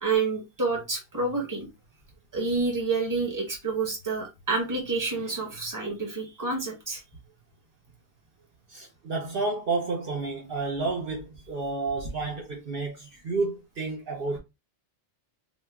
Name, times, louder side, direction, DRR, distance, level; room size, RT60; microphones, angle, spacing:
voice 1, 0.0-1.7 2.3-7.0, right 4 dB, 20° right, 1.1 m, -28 dB
voice 2, 8.7-14.4, right 3 dB, 60° right, 0.9 m, -30 dB
2.9 x 2.1 x 3.4 m
omnidirectional pair, 1.1 m